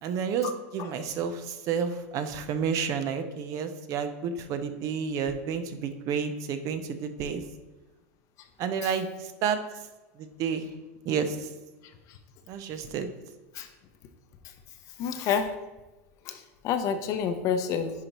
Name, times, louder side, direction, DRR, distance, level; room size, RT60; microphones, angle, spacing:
voice 1, 0.0-7.4 8.6-9.1 9.4-9.6 10.2-10.7 11.1-11.4 12.5-13.1, right 6 dB, 45° right, 9 dB, 0.7 m, -30 dB
voice 2, 15.0-15.5 16.3-17.9, left 7 dB, 45° left, 8 dB, 0.7 m, -28 dB
10.5 x 4.2 x 3.0 m, 1.1 s
supercardioid pair, 120°, 8 cm